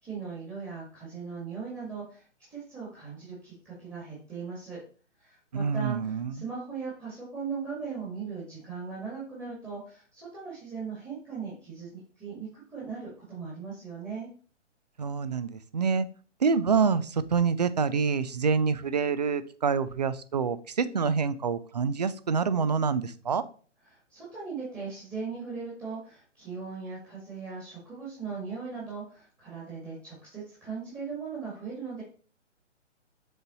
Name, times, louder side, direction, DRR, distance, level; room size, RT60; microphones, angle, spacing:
voice 1, 0.0-4.8 5.2-14.3 23.9-32.0, right 5 dB, 10° right, -7 dB, 1.7 m, -39 dB
voice 2, 5.5-6.4 15.0-16.1 16.4-23.4, right 5 dB, 35° right, 15 dB, 0.4 m, -27 dB
6.9 x 4.0 x 4.0 m, 0.41 s
figure-of-eight pair, 135°, 37 cm